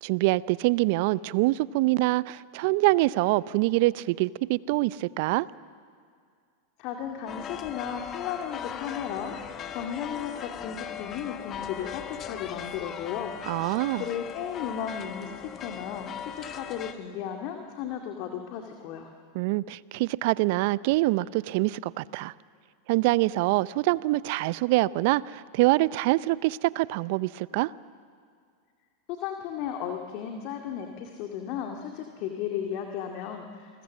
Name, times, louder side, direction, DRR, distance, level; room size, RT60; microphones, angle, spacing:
voice 1, 0.0-5.5 13.5-14.0 19.3-22.3 22.9-27.7, right 19 dB, 55° right, 20 dB, 0.6 m, -25 dB
voice 2, 6.8-13.3 14.0-19.1 29.1-33.8, left 8 dB, 50° left, 3 dB, 2.1 m, -35 dB
sound 1, 7.3-16.9, left 8 dB, 35° left, 1.5 m, -39 dB
29.0 x 21.0 x 7.3 m, 2.2 s
hypercardioid pair, 95°, 0 cm